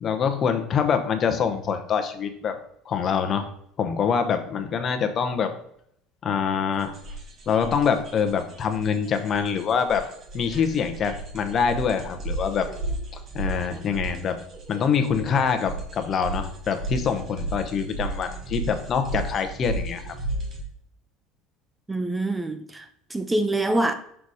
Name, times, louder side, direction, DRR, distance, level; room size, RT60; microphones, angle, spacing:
voice 1, 0.0-2.6 2.9-3.5 3.8-5.5 6.2-6.9 7.5-10.1 10.3-12.7 13.1-14.4 14.7-20.2, left 6 dB, 40° left, 0.8 m, -25 dB
sound 1, 6.8-20.6, right 2 dB, 40° right, 1.6 m, -34 dB
voice 2, 21.9-23.9, right 1 dB, 10° right, 0.5 m, -25 dB
5.9 x 4.1 x 4.8 m
supercardioid pair, 120°, 0 cm